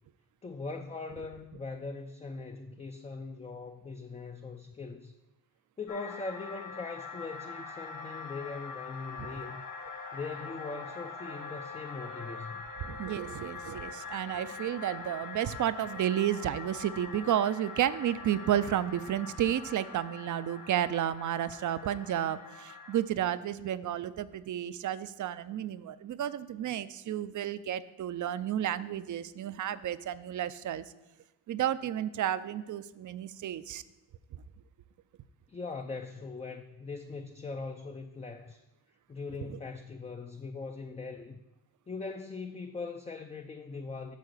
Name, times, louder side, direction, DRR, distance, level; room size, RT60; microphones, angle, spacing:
voice 1, 0.4-5.1 5.8-9.6 10.1-12.7 35.5-38.6 39.1-41.4 41.9-44.2, left 4 dB, 15° left, 0.4 m, -41 dB
sound 1, 5.9-23.0, left 4 dB, 55° left, 1.3 m, -43 dB
voice 2, 12.8-30.8 31.5-33.8 34.3-34.4 39.5-39.6, right 11 dB, 50° right, 0.5 m, -32 dB
8.4 x 3.8 x 6.6 m
supercardioid pair, 60°, 40 cm